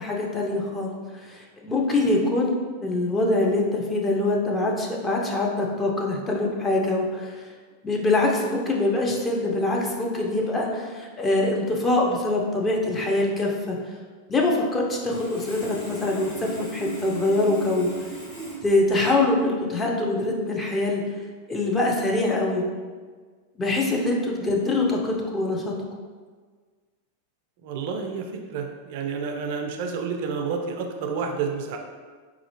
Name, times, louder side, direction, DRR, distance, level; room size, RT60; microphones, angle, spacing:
voice 1, 0.0-7.4 7.8-13.8 14.3-17.9 18.6-21.0 21.5-22.6 23.6-25.7, left 2 dB, 15° left, -1 dB, 0.6 m, -24 dB
Sawing, 15.0-18.5, right 3 dB, 55° left, 1.4 m, -37 dB
voice 2, 27.6-31.8, right 5 dB, 50° right, 4 dB, 0.4 m, -30 dB
4.1 x 2.3 x 2.8 m, 1.5 s
figure-of-eight pair, 90°, 0 cm